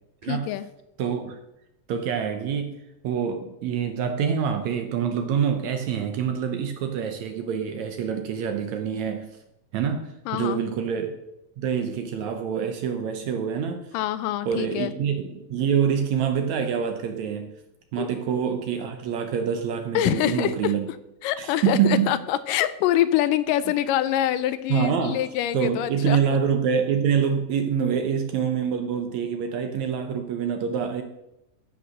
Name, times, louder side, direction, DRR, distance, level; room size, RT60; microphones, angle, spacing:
voice 1, 0.2-0.7 10.3-10.6 13.9-14.9 18.0-18.1 19.9-20.7 21.2-26.2, left 12 dB, 80° left, 14 dB, 2.1 m, -25 dB
voice 2, 1.0-1.4 1.9-9.3 9.7-11.2 11.6-13.9 14.5-17.5 17.9-20.9 21.4-22.1 24.7-25.2 25.5-31.0, right 7 dB, 70° right, 6 dB, 1.9 m, -26 dB
13.5 x 5.9 x 6.4 m, 0.87 s
omnidirectional pair, 4.0 m